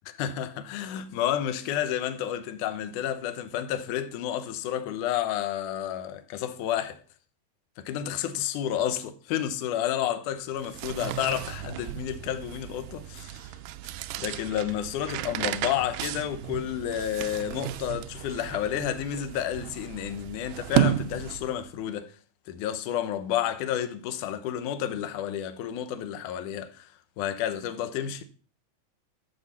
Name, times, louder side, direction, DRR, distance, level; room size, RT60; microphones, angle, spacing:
voice 1, 0.2-7.0 7.8-13.5 14.2-22.1 22.5-26.9 27.2-28.2, left 10 dB, 70° left, 2.2 m, -30 dB
sound 1, 10.5-21.7, right 11 dB, 80° right, 2.2 m, -33 dB
12.5 x 4.7 x 7.0 m
omnidirectional pair, 4.1 m